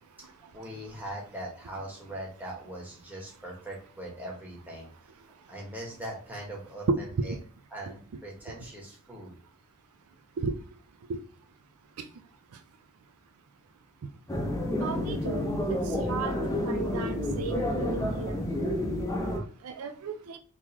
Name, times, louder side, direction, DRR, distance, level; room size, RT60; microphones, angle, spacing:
voice 1, 0.2-4.9 5.5-7.3 7.7-9.3, right 1 dB, 10° right, 1.3 m, -41 dB
sound 1, 14.3-19.4, left 1 dB, 15° left, 0.6 m, -30 dB
voice 2, 14.8-15.5 16.1-18.4 19.2-20.4, right 4 dB, 80° right, 0.4 m, -33 dB
3.7 x 3.0 x 2.9 m
head